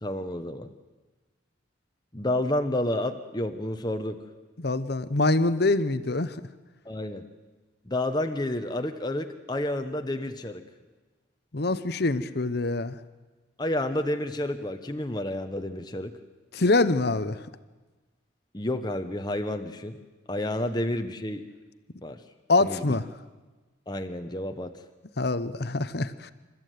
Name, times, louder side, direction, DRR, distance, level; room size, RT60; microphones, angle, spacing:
voice 1, 0.0-0.7 2.1-4.2 6.8-7.2 7.9-10.6 13.6-16.1 18.5-20.0 20.3-21.4 22.0-22.2 22.6-22.9 23.9-24.7, left 1 dB, 20° left, 6 dB, 1.0 m, -30 dB
voice 2, 4.6-6.4 11.5-13.0 16.5-17.4 22.5-23.1 25.2-26.3, left 2 dB, 55° left, 13 dB, 0.9 m, -25 dB
27.5 x 14.0 x 9.3 m, 1.2 s
head